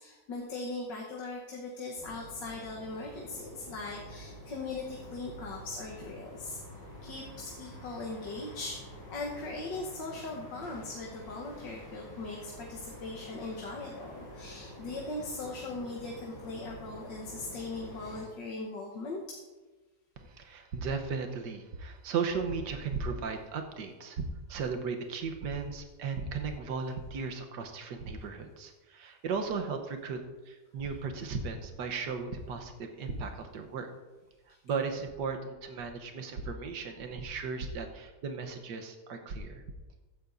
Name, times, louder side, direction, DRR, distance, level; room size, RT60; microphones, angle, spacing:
voice 1, 0.0-6.6 7.0-19.4, left 3 dB, 85° left, -2 dB, 1.9 m, -40 dB
sound 1, 1.9-18.3, equal, 25° left, 3.6 m, -48 dB
voice 2, 20.2-30.2 30.5-33.9 34.6-39.6, right 5 dB, 75° right, 5 dB, 1.6 m, -36 dB
15.0 x 10.5 x 2.6 m, 1.2 s
omnidirectional pair, 1.9 m